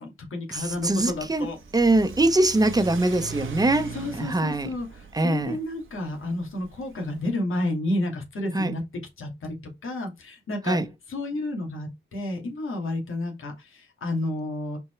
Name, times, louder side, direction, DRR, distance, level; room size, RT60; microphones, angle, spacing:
voice 1, 0.0-1.6 3.9-8.8 9.2-9.6 9.8-10.8 11.1-14.8, left 1 dB, 85° left, 2.6 m, -31 dB
voice 2, 0.5-1.5 1.7-4.7 5.1-5.6 8.5-8.7 10.7-10.8, right 2 dB, 20° right, 1.1 m, -23 dB
Car / Accelerating revving vroom, 0.6-7.3, right 5 dB, 75° right, 1.3 m, -41 dB
5.7 x 4.6 x 4.6 m
wide cardioid pair, 105°, 21 cm